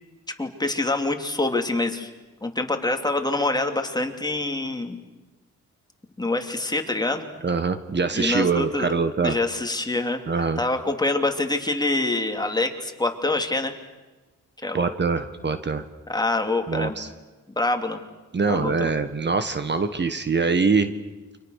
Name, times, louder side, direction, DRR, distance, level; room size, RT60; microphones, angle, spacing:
voice 1, 0.4-2.1 2.4-5.0 6.2-7.2 8.1-8.9 9.2-13.7 14.6-14.9 16.1-17.0 17.6-18.0 18.5-18.9, left 2 dB, 15° left, 4 dB, 3.0 m, -25 dB
voice 2, 7.4-9.4 10.3-10.6 14.7-15.9 16.7-17.1 18.3-20.9, right 4 dB, 40° right, 10 dB, 1.6 m, -23 dB
29.5 x 26.0 x 6.6 m, 1.2 s
cardioid pair, 110°, 29 cm